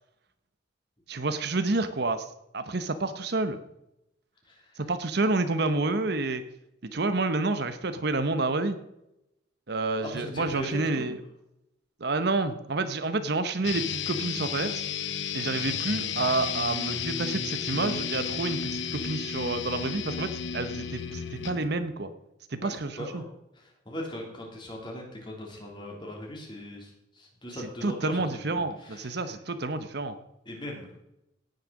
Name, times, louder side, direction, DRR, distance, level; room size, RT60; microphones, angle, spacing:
voice 1, 1.1-2.3 2.5-3.6 4.8-6.4 6.8-8.8 9.7-11.2 12.0-14.8 15.3-22.1 22.5-23.2 27.8-30.1, right 3 dB, 55° right, 10 dB, 0.9 m, -29 dB
voice 2, 4.4-4.8 10.0-11.1 22.6-23.3 23.5-29.3 30.4-30.9, left 1 dB, 25° left, 0 dB, 3.3 m, -39 dB
sound 1, 13.6-21.6, left 7 dB, 65° left, 0.9 m, -33 dB
17.5 x 6.6 x 6.4 m, 0.86 s
head